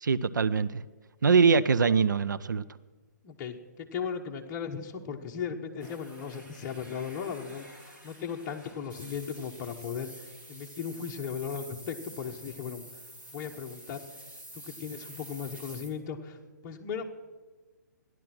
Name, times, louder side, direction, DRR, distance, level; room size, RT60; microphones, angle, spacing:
voice 1, 0.0-0.8 1.2-2.6, right 5 dB, 85° right, 16 dB, 0.5 m, -23 dB
voice 2, 3.2-7.7 8.0-12.8 13.3-14.0 14.5-16.4 16.6-17.0, left 7 dB, 25° left, 2 dB, 1.2 m, -37 dB
sound 1, 5.8-15.9, right 1 dB, 15° right, 1.8 m, -49 dB
13.5 x 11.0 x 6.1 m, 1.3 s
hypercardioid pair, 145°, 10 cm